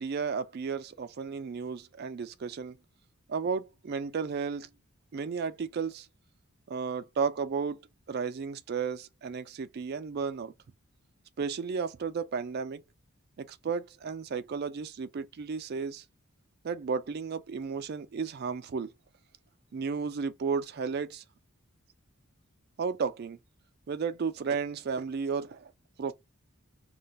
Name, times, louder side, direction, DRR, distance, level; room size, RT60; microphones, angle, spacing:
voice 1, 0.0-2.8 3.3-4.7 5.1-6.1 6.7-10.5 11.4-12.8 13.5-16.0 16.6-18.9 19.7-21.2 22.8-23.4 23.9-25.7 26.0-26.1, right 5 dB, 45° right, 0.3 m, -33 dB
2.4 x 2.2 x 3.9 m
head